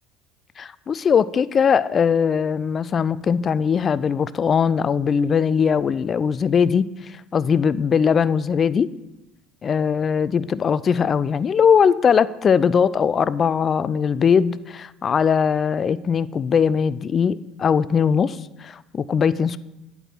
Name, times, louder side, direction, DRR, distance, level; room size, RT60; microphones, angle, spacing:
voice 1, 0.6-8.9 9.6-19.6, left 6 dB, 40° left, 18 dB, 0.3 m, -20 dB
9.0 x 4.7 x 6.0 m, 0.96 s
hypercardioid pair, 70°, 0 cm